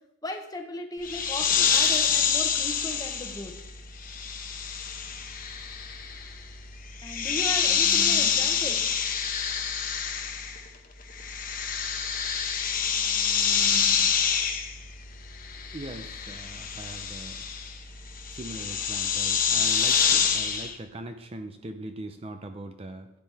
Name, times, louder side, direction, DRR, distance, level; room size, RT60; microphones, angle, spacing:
voice 1, 0.2-3.5 7.0-8.9, left 1 dB, 20° left, 4 dB, 1.0 m, -37 dB
sound 1, 1.0-10.8 11.0-20.7, left 7 dB, 45° left, 1.0 m, -27 dB
voice 2, 15.7-17.5 18.3-23.1, right 1 dB, 30° right, 7 dB, 0.6 m, -40 dB
11.5 x 9.6 x 3.5 m, 0.87 s
head